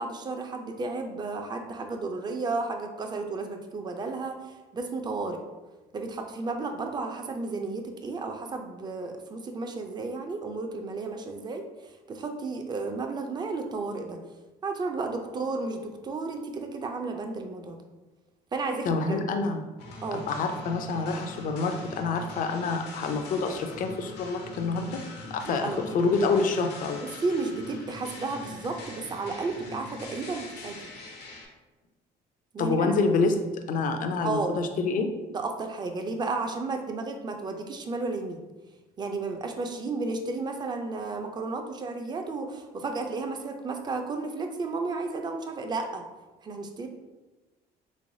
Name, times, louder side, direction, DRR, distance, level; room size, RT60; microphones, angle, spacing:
voice 1, 0.0-5.4 5.9-14.2 14.6-17.8 18.5-19.2 20.0-20.3 25.4-26.0 26.9-30.8 32.5-32.9 34.2-34.5 35.3-38.4 39.0-46.0 46.4-46.9, right 3 dB, 25° right, 5 dB, 0.4 m, -33 dB
voice 2, 18.9-19.6 20.1-25.0 25.3-27.0 32.6-33.3 33.7-35.1, left 4 dB, 55° left, 6 dB, 0.5 m, -27 dB
sound 1, 19.8-31.4, left 2 dB, 80° left, 0.7 m, -43 dB
3.4 x 3.1 x 2.6 m, 1.2 s
cardioid pair, 110°, 17 cm